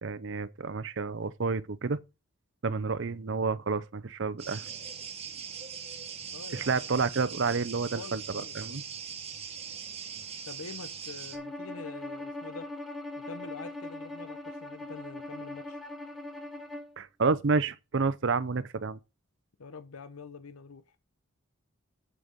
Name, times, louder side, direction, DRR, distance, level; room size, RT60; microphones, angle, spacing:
voice 1, 0.0-2.0 2.6-4.7 6.5-8.8 17.0-19.0, right 4 dB, 55° right, 0.6 m, -30 dB
sound 1, 4.4-11.4, right 7 dB, 30° right, 1.3 m, -41 dB
voice 2, 6.3-7.0 7.9-8.8 10.4-12.7 13.2-15.8 19.6-20.8, left 4 dB, 85° left, 0.8 m, -45 dB
Bowed string instrument, 11.3-16.9, left 2 dB, ahead, 1.0 m, -40 dB
7.6 x 6.4 x 5.2 m
head